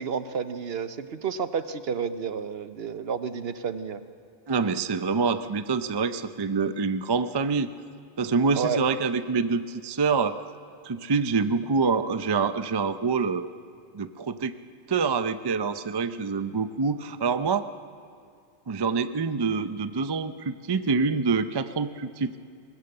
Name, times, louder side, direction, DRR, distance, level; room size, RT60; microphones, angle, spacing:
voice 1, 0.0-4.0 8.5-8.8, right 6 dB, 60° right, 11 dB, 1.0 m, -30 dB
voice 2, 4.5-7.7 8.2-10.4 10.8-13.5 13.9-14.6 14.9-17.7 18.7-22.3, right 4 dB, 35° right, 11 dB, 0.4 m, -26 dB
21.0 x 19.5 x 7.8 m, 2.3 s
omnidirectional pair, 1.2 m